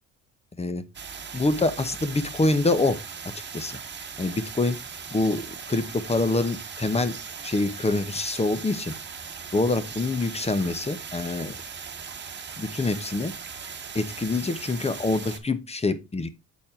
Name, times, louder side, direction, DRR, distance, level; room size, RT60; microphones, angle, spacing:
sound 1, 0.9-15.4, right 6 dB, 35° right, 1.3 m, -39 dB
voice 1, 1.3-3.0 3.5-3.8 4.2-4.8 5.1-7.2 7.4-8.9 9.5-11.6 12.6-13.3 13.9-16.3, left 2 dB, 20° left, 13 dB, 1.0 m, -25 dB
7.4 x 4.2 x 4.5 m, 0.25 s
cardioid pair, 90°, 30 cm